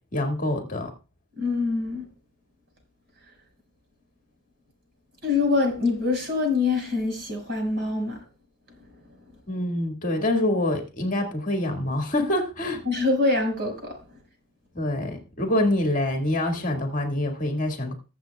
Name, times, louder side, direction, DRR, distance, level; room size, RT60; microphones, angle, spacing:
voice 1, 0.1-0.9 9.5-12.8 14.7-17.9, left 1 dB, 35° left, 1.9 m, -26 dB
voice 2, 1.4-2.1 5.2-8.2 12.8-14.0, left 3 dB, 50° right, 5.2 m, -24 dB
20.5 x 7.5 x 2.3 m
head